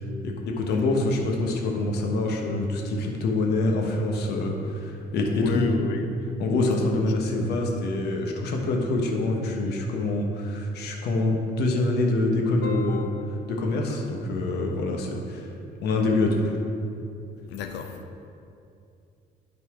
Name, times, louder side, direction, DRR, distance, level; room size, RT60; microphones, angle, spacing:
voice 1, 0.2-5.8 6.4-13.0 13.5-15.4 15.8-16.6, left 2 dB, 70° left, 1 dB, 1.1 m, -25 dB
voice 2, 5.3-6.1 6.9-7.0 12.6-13.5 17.5-18.0, left 6 dB, 90° left, 5 dB, 0.7 m, -32 dB
11.5 x 4.2 x 3.7 m, 2.5 s
cardioid pair, 135°, 18 cm